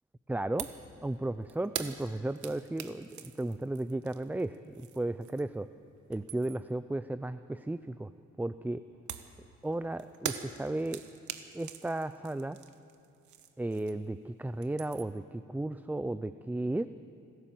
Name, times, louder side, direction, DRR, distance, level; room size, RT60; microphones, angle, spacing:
voice 1, 0.3-0.7 1.0-5.7 6.1-8.1 8.4-8.8 9.6-11.0 11.5-12.6 13.6-16.9, right 2 dB, 5° right, 13 dB, 0.4 m, -34 dB
sound 1, 0.6-0.9 1.2-5.6 6.0-6.7 9.1-14.2 14.5-15.2, right 9 dB, 75° right, 1.2 m, -43 dB
26.5 x 13.0 x 7.7 m, 2.7 s
cardioid pair, 90°, 30 cm